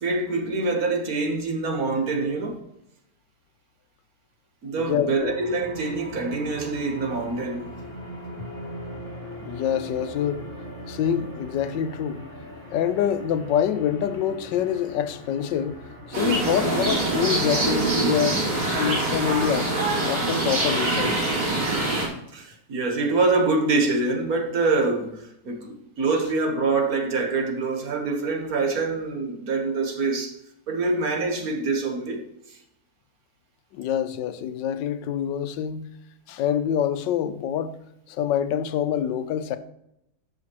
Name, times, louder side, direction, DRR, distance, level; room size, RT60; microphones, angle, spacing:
voice 1, 0.0-2.6 4.6-7.7 22.3-30.3 30.7-32.3, right 3 dB, 60° right, 1.6 m, -25 dB
voice 2, 4.8-5.3 9.4-10.5 10.9-12.2 12.7-19.7 20.0-21.3 33.7-35.9 36.3-37.8 38.1-39.6, left 9 dB, 90° left, 1.3 m, -26 dB
sound 1, 5.2-16.9, equal, 40° left, 4.0 m, -40 dB
sound 2, 16.1-22.1, right 2 dB, 85° right, 3.4 m, -24 dB
13.5 x 5.7 x 3.0 m
omnidirectional pair, 1.9 m